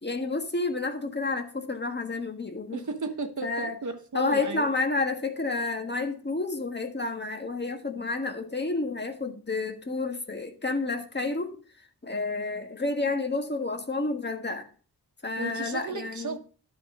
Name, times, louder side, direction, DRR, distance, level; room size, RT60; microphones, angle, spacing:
voice 1, 0.0-2.8 3.4-3.8 4.1-14.7 15.2-16.4, left 3 dB, 25° left, 1.6 m, -30 dB
voice 2, 2.7-4.7 15.4-16.4, right 3 dB, 45° right, 1.3 m, -34 dB
12.0 x 4.2 x 6.6 m
wide cardioid pair, 85°, 40 cm